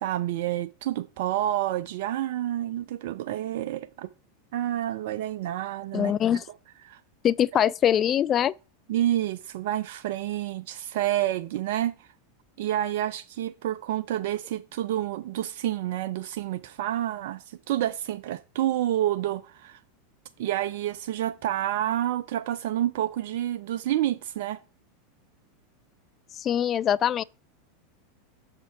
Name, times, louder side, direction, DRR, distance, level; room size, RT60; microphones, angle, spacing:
voice 1, 0.0-4.1 4.5-6.1 6.9-7.0 8.9-12.1 12.6-19.8 20.4-24.6, right 12 dB, 65° right, 0.4 m, -29 dB
voice 2, 5.9-6.4 7.2-8.5 26.4-27.2, left 10 dB, 35° left, 0.3 m, -23 dB
6.3 x 5.3 x 4.5 m
hypercardioid pair, 95°, 0 cm